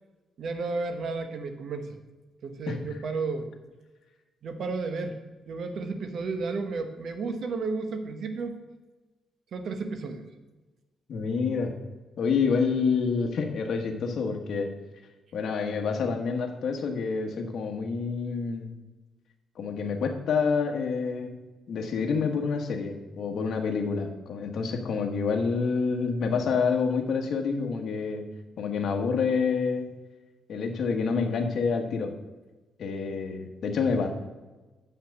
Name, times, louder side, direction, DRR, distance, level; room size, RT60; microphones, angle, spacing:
voice 1, 0.4-2.0 2.4-3.5 4.4-5.2 5.5-8.6 9.5-10.3, right 4 dB, 55° right, 7 dB, 1.1 m, -32 dB
voice 2, 11.1-11.7 12.2-14.7 15.3-18.7 19.6-21.4 21.7-28.2 28.6-29.9 30.5-32.1 32.8-34.1, left 5 dB, 60° left, 3 dB, 1.3 m, -27 dB
8.2 x 5.8 x 6.7 m, 1.2 s
cardioid pair, 135°, 0 cm